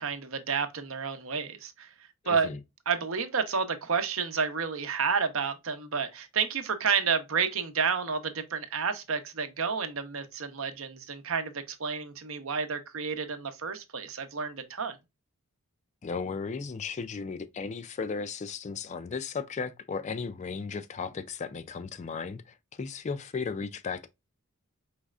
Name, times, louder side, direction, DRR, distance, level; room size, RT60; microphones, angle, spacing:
voice 1, 0.0-1.9 2.3-2.5 2.9-15.0, right 6 dB, 60° right, 0.7 m, -30 dB
voice 2, 2.2-2.6 16.0-24.1, left 5 dB, 30° left, 0.3 m, -35 dB
4.8 x 3.2 x 2.3 m
head